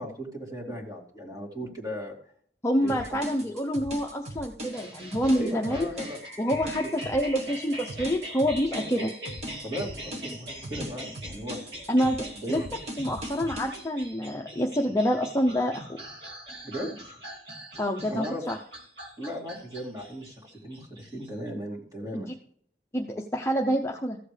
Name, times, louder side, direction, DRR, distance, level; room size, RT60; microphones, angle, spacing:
voice 1, 0.0-2.1 2.8-3.5 5.4-6.2 6.5-6.9 8.9-9.1 9.6-11.6 12.4-12.7 16.6-17.2 18.1-18.4 19.2-22.3, equal, 20° right, -1 dB, 2.6 m, -37 dB
voice 2, 2.6-5.9 6.4-9.1 11.9-12.6 13.0-16.0 17.8-18.6 22.1-22.3 22.9-24.2, equal, 15° left, 1 dB, 0.7 m, -27 dB
sound 1, 2.9-13.8, equal, 40° right, 1.4 m, -40 dB
sound 2, 4.6-21.5, equal, 70° right, 2.7 m, -43 dB
14.5 x 7.8 x 3.3 m, 0.62 s
head